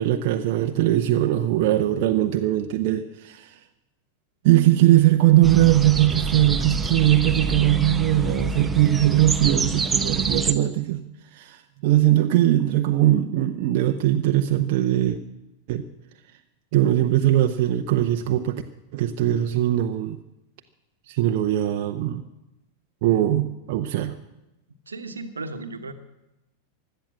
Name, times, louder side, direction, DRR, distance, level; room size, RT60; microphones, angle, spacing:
voice 1, 0.0-3.5 4.4-11.0 11.3-15.2 15.7-15.8 16.7-18.6 18.9-20.2 21.1-22.2 23.0-24.1, right 13 dB, 50° right, 6 dB, 0.8 m, -20 dB
sound 1, 5.4-10.5, right 3 dB, 15° right, 0.9 m, -27 dB
voice 2, 24.9-25.9, right 3 dB, 75° right, 9 dB, 1.2 m, -35 dB
16.0 x 11.5 x 7.5 m, 0.95 s
figure-of-eight pair, 90°, 0 cm